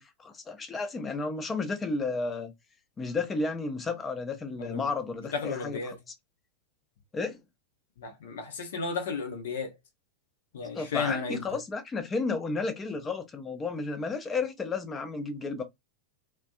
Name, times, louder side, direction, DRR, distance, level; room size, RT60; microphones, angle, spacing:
voice 1, 0.0-2.5 3.0-6.0 7.1-7.4 10.7-15.6, left 3 dB, 20° left, 0.6 m, -32 dB
voice 2, 5.3-6.0 8.0-9.7 10.5-11.6, left 4 dB, 60° left, 0.7 m, -33 dB
2.5 x 2.2 x 2.3 m
figure-of-eight pair, 90°, 0 cm